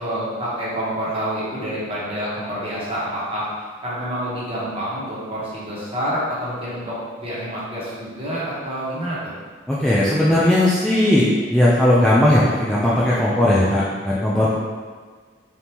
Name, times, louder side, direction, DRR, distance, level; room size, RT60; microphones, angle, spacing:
voice 1, 0.0-3.5 3.8-9.3 14.5-14.6, equal, 30° right, -8 dB, 1.2 m, -27 dB
voice 2, 9.7-14.5, left 1 dB, 5° left, -8 dB, 0.4 m, -17 dB
4.1 x 3.5 x 2.9 m, 1.5 s
head